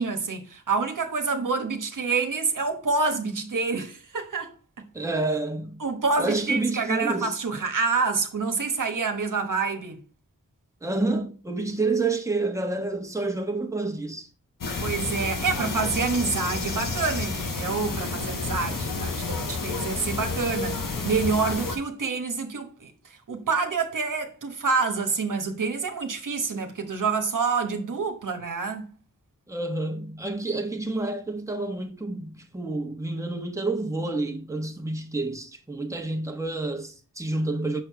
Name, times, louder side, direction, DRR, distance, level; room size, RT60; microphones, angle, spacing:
voice 1, 0.0-4.5 5.8-10.0 14.8-20.8 21.0-22.9 23.3-28.9, right 4 dB, 70° right, 1.1 m, -27 dB
voice 2, 4.9-5.8 6.2-7.4 10.8-14.3 18.7-18.8 29.5-37.8, right 2 dB, 10° right, 1.2 m, -29 dB
sound 1, 14.6-21.8, left 3 dB, 75° left, 1.3 m, -30 dB
6.4 x 4.5 x 4.6 m
cardioid pair, 45°, 32 cm